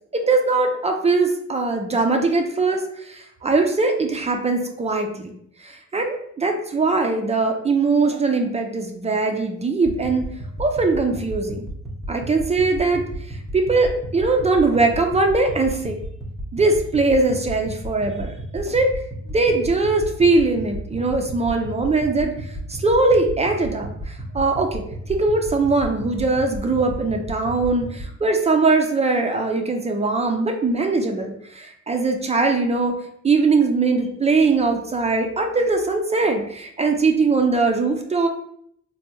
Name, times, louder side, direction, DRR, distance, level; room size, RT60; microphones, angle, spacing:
voice 1, 0.1-2.8 3.1-5.3 5.6-10.3 10.6-11.7 12.1-13.0 13.5-16.0 16.5-18.9 19.3-22.3 22.7-24.8 25.1-33.0 33.2-38.3, right 3 dB, 20° right, 3 dB, 0.4 m, -21 dB
sound 1, 9.8-28.1, right 1 dB, ahead, 0.8 m, -34 dB
3.3 x 2.2 x 2.9 m, 0.69 s
cardioid pair, 90°, 30 cm